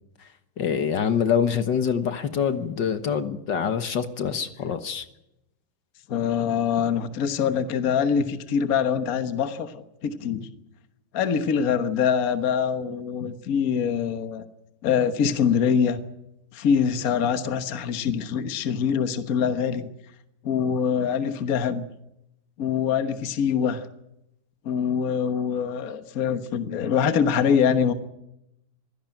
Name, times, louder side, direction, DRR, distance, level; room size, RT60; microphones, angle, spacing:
voice 1, 0.6-5.1, left 7 dB, 65° left, 10 dB, 1.9 m, -25 dB
voice 2, 6.1-10.5 11.1-14.4 14.8-16.0 16.5-19.9 20.4-21.9 22.6-23.8 24.6-27.9, left 7 dB, 50° left, 10 dB, 1.6 m, -24 dB
24.5 x 16.5 x 9.0 m, 0.87 s
omnidirectional pair, 2.1 m